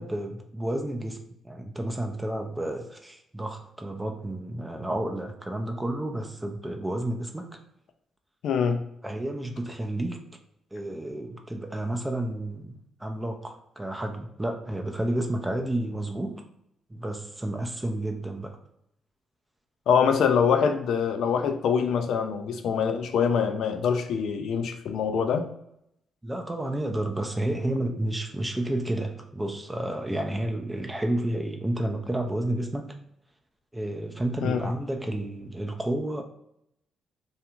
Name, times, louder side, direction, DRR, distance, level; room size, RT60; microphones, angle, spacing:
voice 1, 0.0-7.6 9.0-10.2 10.7-16.4 16.9-18.6 26.2-32.9 33.7-36.2, right 1 dB, 15° right, 4 dB, 0.4 m, -31 dB
voice 2, 8.4-8.8 19.9-25.5 34.4-34.7, left 6 dB, 70° left, 7 dB, 0.3 m, -24 dB
2.4 x 2.3 x 2.8 m, 0.77 s
supercardioid pair, 55°, 0 cm